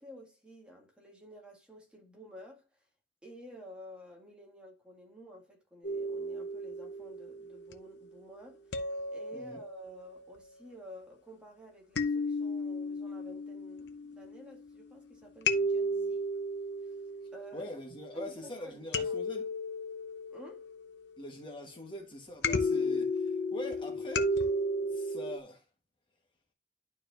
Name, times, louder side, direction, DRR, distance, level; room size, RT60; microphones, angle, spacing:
voice 1, 0.0-2.6 3.2-8.8 9.1-16.3 16.8-16.9 17.3-17.7 18.1-19.2 20.3-20.7, equal, 5° right, 2.0 m, -51 dB
sound 1, 5.8-7.9 8.7-10.2 12.0-14.9 15.5-18.1 18.9-21.1 22.4-25.4, left 1 dB, 70° left, 0.7 m, -34 dB
voice 2, 17.5-19.5 21.2-24.3 24.8-25.6, left 1 dB, 30° left, 1.3 m, -43 dB
11.5 x 4.7 x 2.5 m
head